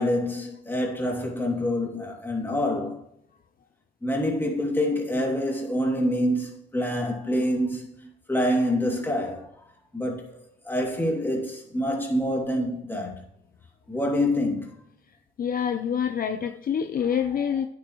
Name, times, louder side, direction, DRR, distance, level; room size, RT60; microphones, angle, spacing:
voice 1, 0.0-3.0 4.0-9.5 9.9-10.4 10.6-13.2 13.9-14.7 17.0-17.6, left 1 dB, 10° left, 2.6 m, -26 dB
voice 2, 15.4-17.7, left 8 dB, 45° left, 0.6 m, -26 dB
9.2 x 8.0 x 3.1 m
cardioid pair, 90°, 20 cm